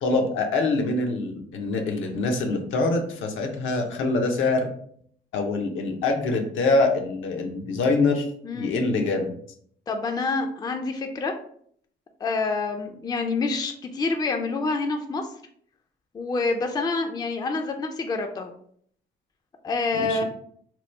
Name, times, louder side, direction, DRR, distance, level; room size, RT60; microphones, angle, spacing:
voice 1, 0.0-4.7 5.3-8.3 8.5-9.3 19.9-20.2, left 3 dB, 80° left, 4 dB, 0.6 m, -24 dB
voice 2, 9.9-11.3 12.2-15.3 16.1-18.5 19.6-20.2, left 3 dB, 20° left, 5 dB, 0.4 m, -27 dB
2.9 x 2.2 x 3.2 m, 0.62 s
cardioid pair, 90°, 20 cm